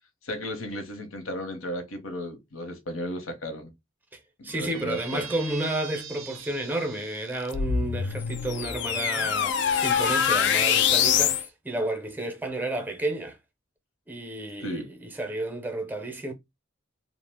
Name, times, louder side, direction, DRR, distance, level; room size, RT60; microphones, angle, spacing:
voice 1, 0.2-3.7 4.4-5.3 14.6-14.9, left 1 dB, 90° left, 0.8 m, -34 dB
voice 2, 4.1-13.4 14.1-16.3, right 1 dB, 10° right, 0.5 m, -31 dB
Squeak, 4.5-7.6 8.4-11.5, right 8 dB, 90° right, 0.4 m, -44 dB
sound 1, 7.5-11.5, left 8 dB, 60° left, 0.3 m, -24 dB
2.7 x 2.0 x 3.3 m
head